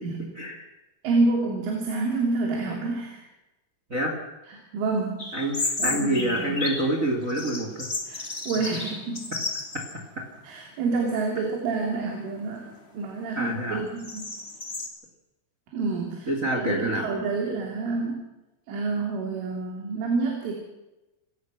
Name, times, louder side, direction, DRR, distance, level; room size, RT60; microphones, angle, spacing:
voice 1, 1.0-3.2 4.7-5.3 5.8-6.6 8.1-9.2 10.5-14.3 15.7-18.2 18.7-20.5, right 3 dB, 70° right, 0 dB, 5.4 m, -28 dB
sound 1, 5.2-6.9 7.3-10.0 10.3-10.4 11.2-11.6 12.1-14.9, left 2 dB, 35° left, 0.9 m, -33 dB
voice 2, 5.3-7.9 13.3-13.8 16.3-17.0, right 1 dB, 30° right, 3 dB, 1.6 m, -27 dB
28.0 x 16.5 x 6.3 m, 0.98 s
omnidirectional pair, 6.0 m